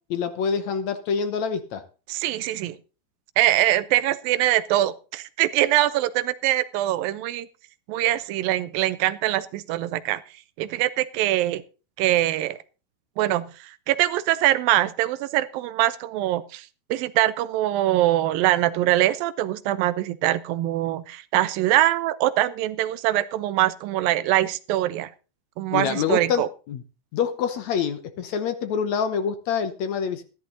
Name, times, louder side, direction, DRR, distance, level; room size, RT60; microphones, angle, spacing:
voice 1, 0.1-1.8 25.7-26.8 27.1-30.2, left 6 dB, 65° left, 10 dB, 2.1 m, -26 dB
voice 2, 2.1-2.8 3.4-7.5 7.9-10.2 10.6-11.6 12.0-12.6 13.2-25.1 25.6-26.5, right 14 dB, 85° right, 16 dB, 2.5 m, -23 dB
14.0 x 12.0 x 3.9 m, 0.34 s
omnidirectional pair, 4.0 m